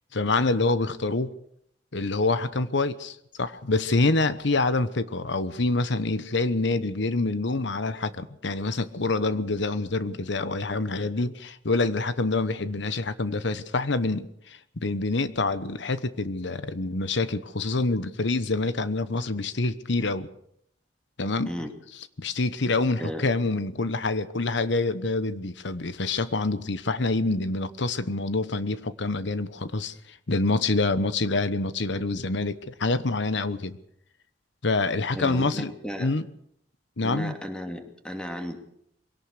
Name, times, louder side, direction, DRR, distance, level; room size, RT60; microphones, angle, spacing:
voice 1, 0.1-1.3 1.9-20.3 21.2-21.5 22.2-33.8 34.6-35.7 36.0-36.2 37.0-37.3, left 3 dB, 70° left, 1.1 m, -26 dB
voice 2, 35.1-36.1 37.0-38.6, equal, 5° left, 2.6 m, -34 dB
22.5 x 17.5 x 6.7 m
head